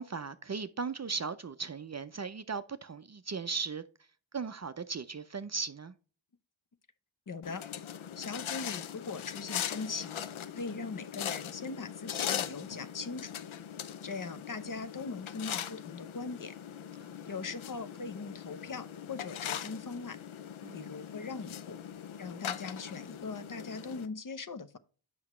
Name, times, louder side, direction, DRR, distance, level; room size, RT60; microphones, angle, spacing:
voice 1, 0.0-3.8 4.3-5.9 17.1-17.2 20.6-20.8, right 5 dB, 35° right, 0.4 m, -37 dB
voice 2, 7.3-7.6 8.2-10.2 10.6-13.3 14.0-16.5 17.3-20.2 20.7-21.8 22.2-24.8, left 4 dB, 45° left, 0.6 m, -40 dB
sound 1, 7.4-24.1, left 9 dB, 90° left, 0.6 m, -40 dB
7.8 x 5.8 x 3.0 m
wide cardioid pair, 110°, 47 cm